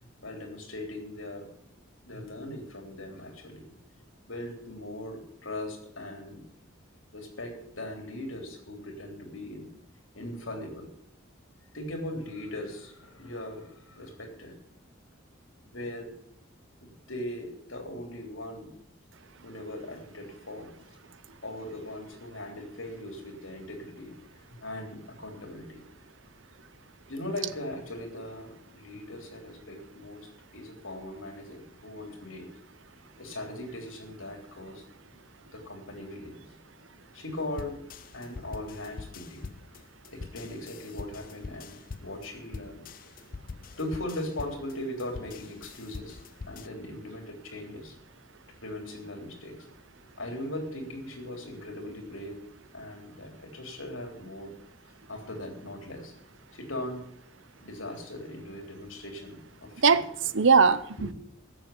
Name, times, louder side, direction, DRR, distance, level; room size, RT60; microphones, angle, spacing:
voice 1, 0.2-1.5 2.1-6.5 7.1-9.7 10.1-10.9 11.7-14.6 15.6-16.1 16.8-18.7 19.4-20.7 21.4-24.1 24.6-25.8 27.1-32.5 33.2-34.8 35.5-36.4 37.1-37.8 38.1-39.5 40.1-42.8 43.8-46.2 46.5-48.0 48.6-49.7 50.2-52.4 52.7-54.5 55.1-56.1 56.5-57.1 57.6-60.0 61.0-61.1, left 1 dB, 80° left, 3.5 m, -39 dB
sound 1, 37.6-46.7, left 4 dB, 45° left, 0.5 m, -43 dB
voice 2, 59.8-61.1, right 5 dB, 70° right, 0.8 m, -21 dB
13.5 x 7.6 x 8.6 m
head